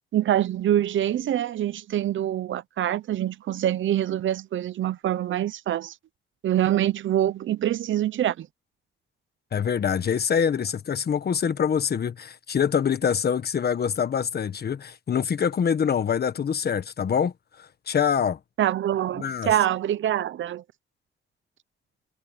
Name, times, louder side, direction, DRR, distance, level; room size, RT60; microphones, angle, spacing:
voice 1, 0.1-5.9 6.4-8.5 18.6-20.6, right 11 dB, 75° right, 0.7 m, -25 dB
voice 2, 9.5-18.4 19.2-19.5, left 7 dB, 50° left, 1.3 m, -25 dB
cardioid pair, 95°, 20 cm